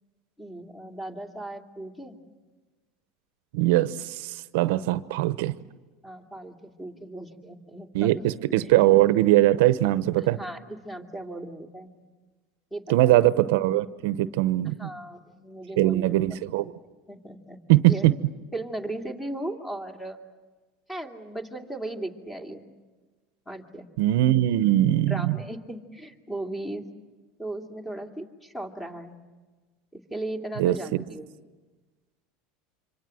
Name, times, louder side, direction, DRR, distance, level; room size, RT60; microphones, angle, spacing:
voice 1, 0.4-2.2 6.0-8.2 8.6-8.7 10.4-11.9 12.7-13.3 14.7-16.1 17.1-17.6 17.9-18.1 18.5-20.2 20.9-22.6 23.5-23.9 25.1-26.8 27.4-29.2 29.9-31.3, right 1 dB, 10° left, 4 dB, 2.5 m, -37 dB
voice 2, 3.5-5.6 7.9-10.4 12.9-14.9 15.8-16.7 17.7-18.2 24.0-25.4 30.6-31.0, right 15 dB, 75° right, 14 dB, 0.8 m, -21 dB
27.0 x 25.0 x 7.7 m, 1.3 s
supercardioid pair, 125°, 0 cm